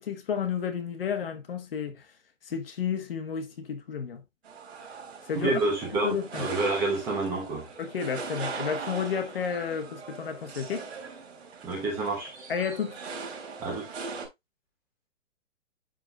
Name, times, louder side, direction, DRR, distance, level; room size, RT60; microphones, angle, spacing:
voice 1, 0.0-2.1 2.4-4.2 5.3-5.5 6.0-6.5 7.8-10.9 12.5-13.0, left 7 dB, 50° left, 1.5 m, -31 dB
sound 1, 4.4-14.3, right 4 dB, 55° right, 3.3 m, -40 dB
voice 2, 5.3-7.7 11.6-12.3 13.6-13.9, right 2 dB, 5° right, 1.0 m, -28 dB
11.5 x 4.1 x 2.4 m
hypercardioid pair, 175°, 37 cm